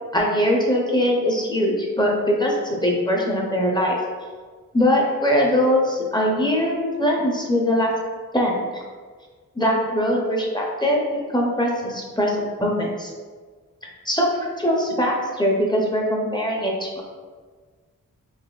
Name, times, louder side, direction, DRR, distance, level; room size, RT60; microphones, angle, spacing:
voice 1, 0.1-4.0 4.7-7.9 8.3-8.8 9.6-13.1 14.0-17.0, equal, 15° left, -2 dB, 0.6 m, -21 dB
4.0 x 2.5 x 2.3 m, 1.5 s
cardioid pair, 65°, 34 cm